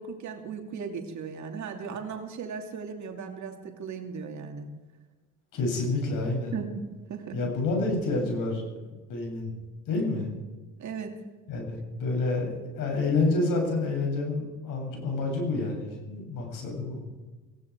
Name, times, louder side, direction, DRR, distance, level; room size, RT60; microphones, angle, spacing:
voice 1, 0.0-4.7 6.5-7.4 10.8-11.1, right 6 dB, 55° right, 4 dB, 2.7 m, -37 dB
voice 2, 5.5-6.5 7.3-8.8 9.1-9.5 9.9-10.3 11.5-17.0, left 3 dB, 70° left, 1 dB, 7.2 m, -28 dB
18.0 x 16.5 x 4.7 m, 1.3 s
supercardioid pair, 85°, 34 cm